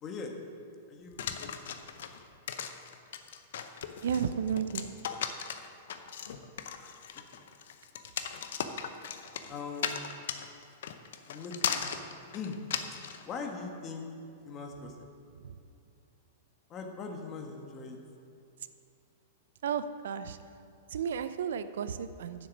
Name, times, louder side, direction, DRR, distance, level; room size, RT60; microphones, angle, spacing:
voice 1, 0.0-0.3 0.9-2.1 6.8-7.4 9.5-10.1 11.3-12.0 12.3-12.6 13.2-14.0 14.4-15.1 16.7-18.0, left 4 dB, 30° left, 3 dB, 1.6 m, -41 dB
sound 1, 1.2-13.2, left 8 dB, 70° left, 0.7 m, -37 dB
voice 2, 4.0-4.9 15.3-15.6 19.6-20.4 20.9-22.5, right 7 dB, 70° right, 12 dB, 0.5 m, -33 dB
10.0 x 7.5 x 6.2 m, 2.6 s
hypercardioid pair, 110°, 0 cm